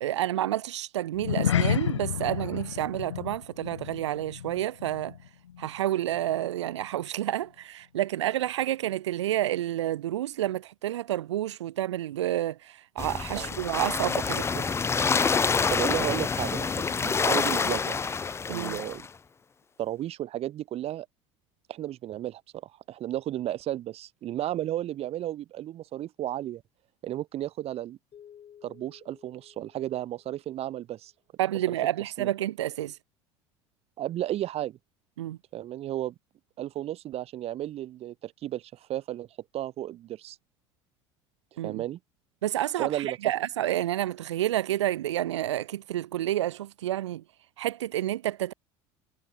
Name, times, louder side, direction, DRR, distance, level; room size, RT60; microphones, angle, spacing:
voice 1, 0.0-5.1 5.6-14.7 18.5-18.8 31.4-33.0 35.2-35.4 41.6-41.8 42.4-47.2 47.6-48.5, right 13 dB, 85° right, 0.5 m, -29 dB
sound 1, 1.1-5.8 6.0-6.3 6.8-6.9, left 10 dB, 90° left, 0.9 m, -31 dB
sound 2, 13.0-19.1, left 5 dB, 20° left, 0.4 m, -27 dB
voice 2, 15.7-18.0 18.5-19.0 19.8-21.1 21.7-26.6 27.0-28.0 28.6-31.1 31.7-31.8 32.2-32.3 34.0-34.8 35.5-36.1 36.6-39.3 39.5-40.4 41.6-42.0 42.8-43.2, right 13 dB, 45° right, 0.7 m, -33 dB
sound 3, 28.1-30.7, left 9 dB, 40° left, 7.1 m, -55 dB
hypercardioid pair, 75°, 15 cm